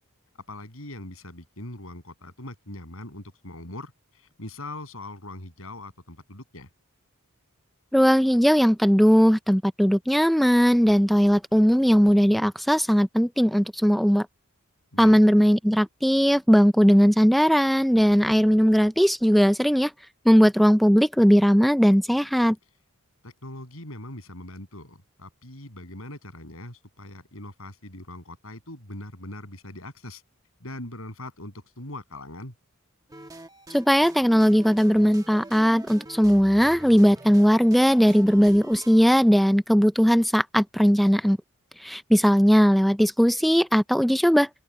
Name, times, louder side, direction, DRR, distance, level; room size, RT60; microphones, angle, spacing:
voice 1, 0.4-6.7 14.9-15.2 23.2-30.2 30.6-32.5, left 1 dB, 70° left, 7.3 m, -41 dB
voice 2, 7.9-14.3 15.0-19.9 20.3-22.6 33.7-41.4 41.8-44.5, equal, ahead, 0.3 m, -19 dB
sound 1, 33.1-39.1, right 1 dB, 15° right, 1.3 m, -44 dB
open air
head